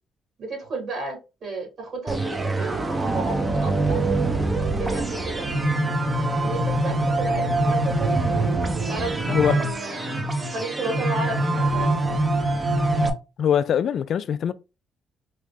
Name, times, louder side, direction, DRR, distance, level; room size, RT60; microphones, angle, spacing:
voice 1, 0.4-4.1 4.7-5.5 6.4-8.2 8.9-10.3 10.5-12.0, right 3 dB, 60° right, 2.4 m, -33 dB
sound 1, 2.1-13.1, right 2 dB, 25° right, 0.7 m, -24 dB
voice 2, 9.3-9.6 13.4-14.5, left 9 dB, 65° left, 0.3 m, -22 dB
4.7 x 2.1 x 3.4 m
cardioid pair, 90°, 0 cm